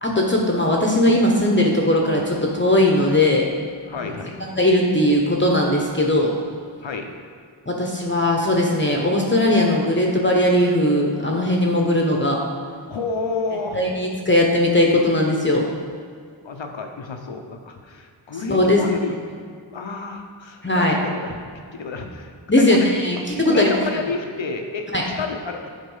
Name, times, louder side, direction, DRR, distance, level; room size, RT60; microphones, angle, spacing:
voice 1, 0.0-3.5 4.0-4.1 4.6-6.3 7.7-12.4 13.7-15.6 18.5-19.0 20.6-20.9 22.5-23.7 24.9-25.0, left 1 dB, 25° left, -1 dB, 1.0 m, -19 dB
voice 2, 3.9-4.4 6.8-7.1 12.9-13.8 16.4-19.2 19.7-22.9 23.3-25.7, left 4 dB, 70° left, 4 dB, 0.9 m, -30 dB
7.4 x 4.2 x 5.6 m, 2.1 s
cardioid pair, 40°, 47 cm